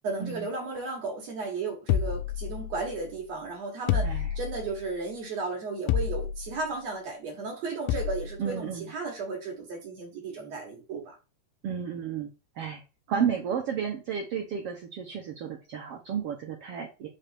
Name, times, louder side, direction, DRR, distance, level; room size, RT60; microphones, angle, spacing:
voice 1, 0.0-11.2 13.1-13.4, right 3 dB, 55° right, 2.1 m, -34 dB
sound 1, 1.9-3.0 3.9-4.8 5.9-6.6 7.9-8.4, left 8 dB, 80° left, 2.1 m, -29 dB
voice 2, 8.4-8.9 11.6-12.3 12.6-12.8 13.1-17.1, right 7 dB, 80° right, 1.3 m, -32 dB
5.7 x 3.5 x 5.7 m
omnidirectional pair, 4.2 m